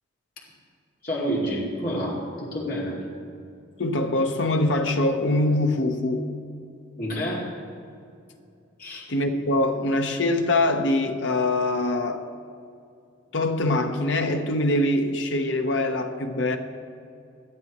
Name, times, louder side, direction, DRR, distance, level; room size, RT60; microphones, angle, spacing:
voice 1, 1.0-3.0 7.0-7.5 8.8-9.0, equal, 45° left, -5 dB, 2.4 m, -28 dB
voice 2, 3.8-6.3 9.1-12.2 13.3-16.6, left 2 dB, 60° left, 5 dB, 0.9 m, -23 dB
19.5 x 12.0 x 3.1 m, 2.5 s
head